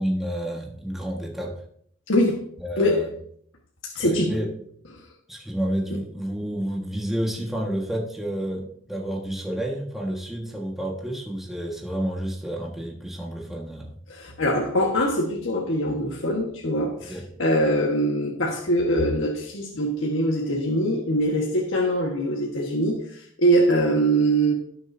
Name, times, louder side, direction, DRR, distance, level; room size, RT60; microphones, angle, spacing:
voice 1, 0.0-1.5 2.6-3.1 4.0-4.5 5.3-13.9 17.1-17.3, right 1 dB, ahead, 1.5 m, -30 dB
voice 2, 2.1-2.4 2.8-3.0 3.8-4.3 5.0-5.1 14.1-24.5, right 1 dB, 85° left, 1.5 m, -23 dB
17.0 x 6.9 x 2.7 m
head